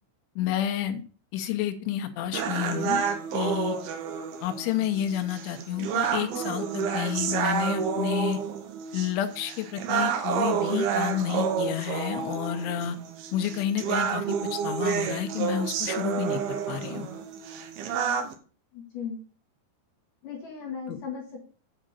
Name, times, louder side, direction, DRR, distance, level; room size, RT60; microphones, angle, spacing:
voice 1, 0.4-1.0 1.3-3.0 3.3-3.8 4.4-8.4 8.9-13.0 13.3-16.4 16.7-17.1 20.9-21.0, left 10 dB, 75° left, 6 dB, 3.2 m, -30 dB
sound 1, 2.3-18.3, right 7 dB, 75° right, 2.3 m, -30 dB
voice 2, 18.7-19.3 20.2-21.5, left 6 dB, 60° left, -2 dB, 2.4 m, -37 dB
8.8 x 5.1 x 6.7 m, 0.40 s
omnidirectional pair, 5.9 m